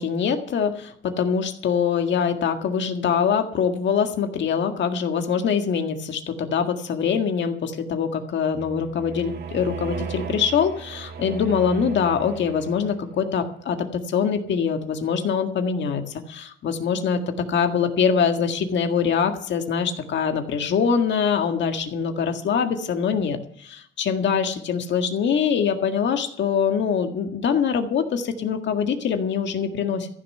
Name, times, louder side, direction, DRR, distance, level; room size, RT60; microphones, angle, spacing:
voice 1, 0.0-30.1, left 6 dB, 65° left, 5 dB, 1.8 m, -24 dB
sound 1, 8.5-13.2, right 6 dB, 55° right, 1.7 m, -36 dB
14.5 x 6.6 x 9.7 m, 0.66 s
cardioid pair, 90°, 20 cm